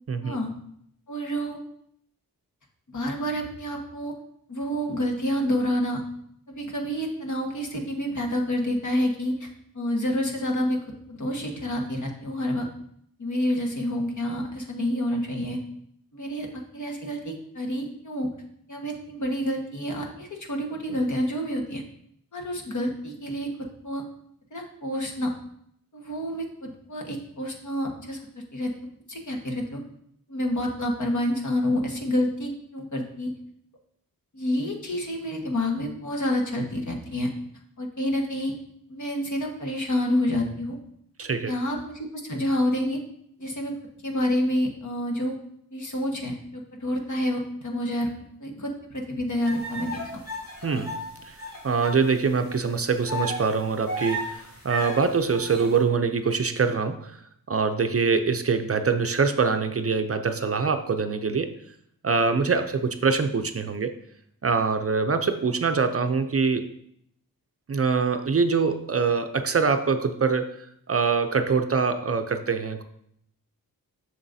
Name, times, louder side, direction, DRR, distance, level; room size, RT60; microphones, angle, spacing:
voice 1, 1.1-1.6 2.9-4.1 4.5-6.0 6.5-9.5 9.7-10.8 11.1-12.7 13.2-15.6 16.1-16.5 16.7-18.3 18.7-21.8 22.3-23.5 23.8-24.0 24.5-25.3 25.9-28.2 28.5-28.7 29.1-29.8 30.3-33.3 34.3-37.3 37.8-38.5 38.9-40.8 41.5-43.0 43.4-43.7 44.0-45.3 45.7-48.1 48.4-50.0 50.7-50.8, left 1 dB, 55° left, 1 dB, 1.4 m, -28 dB
voice 2, 41.2-41.5 50.6-51.4 51.6-57.2 57.5-61.6 62.0-63.9 64.4-66.7 67.7-72.8, right 5 dB, 40° right, 8 dB, 0.5 m, -24 dB
sound 1, 49.4-52.0 52.4-52.5 53.1-55.8, equal, 75° left, 2.9 m, -34 dB
7.2 x 6.4 x 2.7 m, 0.71 s
wide cardioid pair, 65°, 35 cm